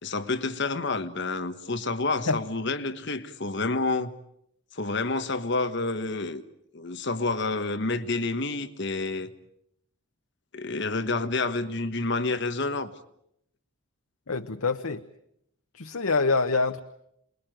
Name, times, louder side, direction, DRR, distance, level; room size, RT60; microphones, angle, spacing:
voice 1, 0.0-4.1 4.7-6.4 6.7-9.3 10.5-12.9, left 3 dB, 55° left, 1.4 m, -29 dB
voice 2, 14.3-15.0 15.7-16.8, left 3 dB, 90° left, 1.0 m, -25 dB
28.5 x 21.5 x 9.2 m
head